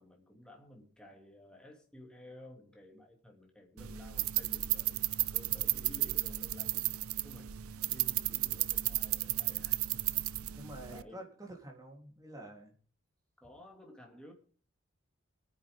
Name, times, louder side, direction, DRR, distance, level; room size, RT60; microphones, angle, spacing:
voice 1, 0.0-7.6 7.9-10.0 10.9-11.2 13.4-14.3, left 1 dB, 5° left, 0 dB, 2.9 m, -54 dB
sound 1, 3.8-11.0, right 16 dB, 90° right, 0.6 m, -33 dB
voice 2, 10.4-12.7, right 1 dB, 15° right, 0 dB, 3.7 m, -48 dB
24.5 x 9.9 x 3.8 m, 0.42 s
head